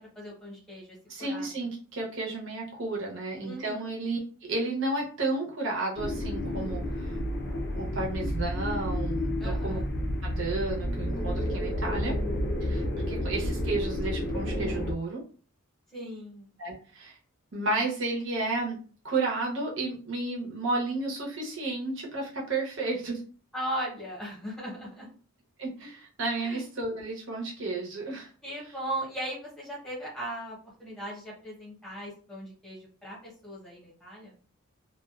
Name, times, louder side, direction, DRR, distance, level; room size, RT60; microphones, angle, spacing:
voice 1, 0.0-1.6 3.4-3.9 9.4-9.9 15.9-16.5 23.5-25.1 26.4-26.7 28.4-34.4, right 1 dB, ahead, -6 dB, 0.9 m, -38 dB
voice 2, 1.1-4.2 4.5-7.1 7.7-9.8 10.2-12.2 12.6-15.2 16.6-17.2 17.5-18.8 19.0-23.2 25.6-28.3, right 2 dB, 55° right, -2 dB, 0.8 m, -32 dB
sound 1, 6.0-14.9, left 1 dB, 50° left, 0.4 m, -30 dB
2.4 x 2.2 x 2.4 m, 0.40 s
head